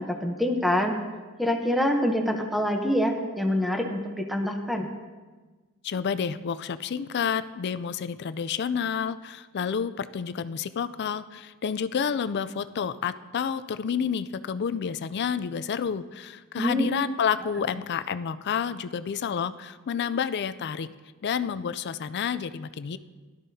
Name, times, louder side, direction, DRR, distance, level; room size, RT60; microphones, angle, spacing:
voice 1, 0.1-0.9 1.4-4.9 16.6-16.9, equal, ahead, 3 dB, 0.8 m, -25 dB
voice 2, 5.8-20.9 21.2-23.0, left 7 dB, 50° left, 13 dB, 0.4 m, -29 dB
16.5 x 12.0 x 2.8 m, 1.3 s
head